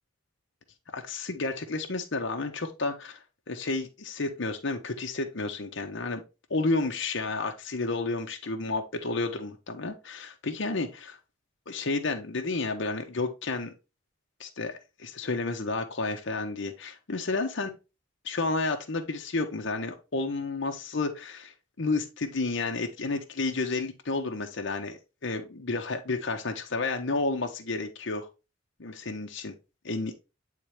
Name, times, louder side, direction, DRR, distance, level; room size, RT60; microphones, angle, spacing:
voice 1, 0.9-3.2 3.5-6.2 6.5-11.2 11.7-13.7 14.4-17.7 18.2-28.3 28.8-29.5 29.8-30.1, left 3 dB, 65° left, 0.9 m, -31 dB
8.9 x 3.8 x 3.4 m
head